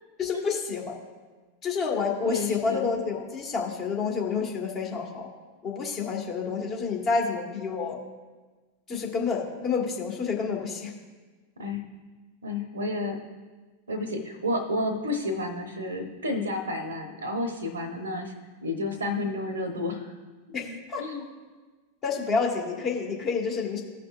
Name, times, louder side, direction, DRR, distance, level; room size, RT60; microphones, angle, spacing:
voice 1, 0.2-1.0 1.6-5.3 5.6-8.0 8.9-10.9 20.5-21.0 22.0-23.8, left 5 dB, 30° left, 0 dB, 1.5 m, -29 dB
voice 2, 2.2-2.8 11.6-11.8 12.4-13.2 13.9-18.3 18.6-20.1 20.6-21.2, left 2 dB, 75° right, 6 dB, 0.9 m, -31 dB
15.5 x 5.9 x 2.5 m, 1.3 s
figure-of-eight pair, 90°, 0 cm